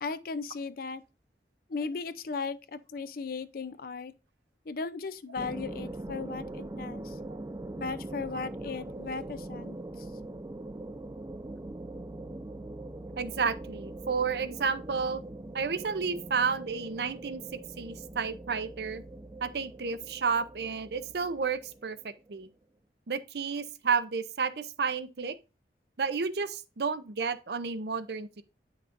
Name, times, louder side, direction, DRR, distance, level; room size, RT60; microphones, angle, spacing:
voice 1, 0.0-1.0 1.7-4.1 4.7-7.1 7.8-9.8, left 4 dB, 55° left, 0.5 m, -36 dB
sound 1, 5.4-22.4, right 2 dB, 20° right, 0.4 m, -42 dB
voice 2, 13.2-15.2 15.5-19.0 19.4-22.5 23.1-25.4 26.0-28.4, right 5 dB, 65° right, 0.6 m, -31 dB
9.1 x 5.9 x 2.6 m
head